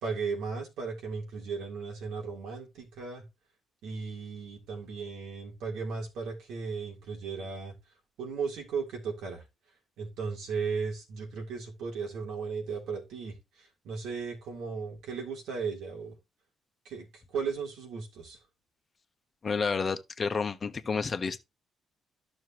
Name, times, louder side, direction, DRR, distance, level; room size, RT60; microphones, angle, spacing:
voice 1, 0.0-3.2 3.8-7.7 8.2-9.4 10.0-16.1 16.9-18.4, right 5 dB, 85° right, 3.5 m, -36 dB
voice 2, 19.4-21.4, left 5 dB, 35° left, 1.1 m, -30 dB
12.0 x 6.3 x 3.0 m
cardioid pair, 90°, 0 cm